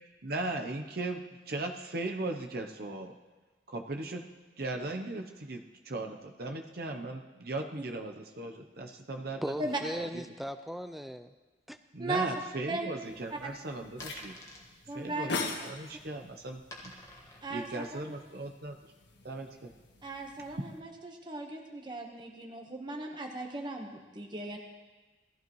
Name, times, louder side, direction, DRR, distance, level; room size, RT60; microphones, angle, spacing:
voice 1, 0.2-3.1 3.7-4.2 4.6-9.4 9.9-10.1 11.9-14.4 14.9-15.3 15.6-16.6 17.5-18.7 19.2-19.7 20.6-20.7, right 2 dB, 55° right, 0.8 m, -37 dB
voice 2, 9.4-11.3 11.7-11.8, equal, ahead, 0.4 m, -38 dB
voice 3, 12.0-12.3 12.7-12.9 13.3-13.4 14.9-15.3 17.4-18.1 20.0-24.6, right 2 dB, 25° right, 1.2 m, -37 dB
sound 1, 12.7-18.7, left 1 dB, 15° left, 1.5 m, -53 dB
sound 2, 13.0-20.8, left 3 dB, 70° left, 1.6 m, -43 dB
19.0 x 14.5 x 3.1 m
head